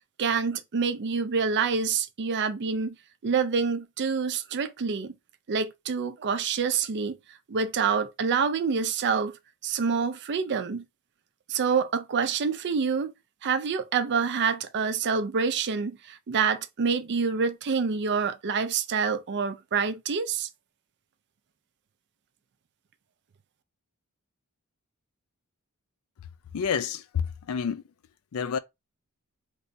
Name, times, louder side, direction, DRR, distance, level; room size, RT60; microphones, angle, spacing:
voice 1, 0.2-3.0 3.2-5.1 5.5-7.2 7.5-9.4 9.6-10.9 11.5-13.1 13.4-20.5, right 5 dB, 50° right, 0.5 m, -27 dB
voice 2, 26.5-27.8 28.3-28.6, left 7 dB, 70° left, 0.4 m, -29 dB
3.3 x 3.0 x 2.7 m
head